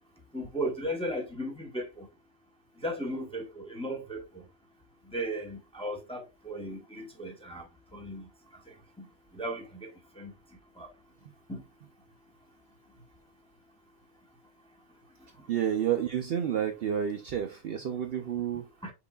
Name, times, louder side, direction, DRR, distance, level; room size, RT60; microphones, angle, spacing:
voice 1, 0.3-2.1 2.8-4.2 5.1-7.6 7.9-8.2 9.3-9.9 10.2-10.3 10.8-10.9 11.5-11.6 18.8-18.9, right 1 dB, 5° left, 0.7 m, -35 dB
voice 2, 15.5-18.7, right 9 dB, 60° right, 0.7 m, -30 dB
5.6 x 4.1 x 2.2 m
omnidirectional pair, 1.3 m